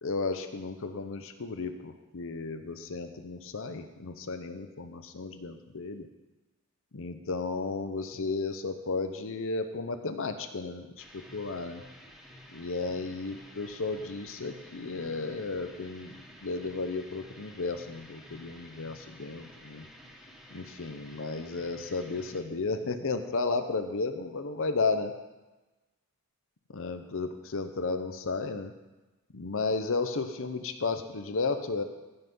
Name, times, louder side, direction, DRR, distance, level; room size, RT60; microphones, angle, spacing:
voice 1, 0.0-6.1 6.9-11.8 12.5-16.2 16.4-19.8 20.5-25.1 26.7-28.7 29.3-31.8, left 3 dB, 65° left, 8 dB, 0.8 m, -33 dB
sound 1, 11.0-22.4, equal, ahead, 1.3 m, -52 dB
16.0 x 5.8 x 5.5 m, 1.1 s
head